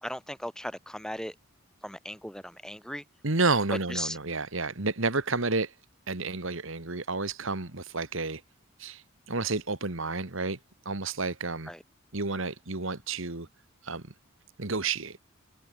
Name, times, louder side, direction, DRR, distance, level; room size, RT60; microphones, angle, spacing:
voice 1, 0.0-1.3 1.8-3.0 3.9-4.2 11.7-11.8, left 1 dB, 5° left, 2.1 m, -37 dB
voice 2, 3.2-5.7 6.1-8.4 8.8-10.6 10.9-11.7 12.1-13.5 13.8-14.0 14.6-15.2, right 3 dB, 65° right, 1.9 m, -30 dB
head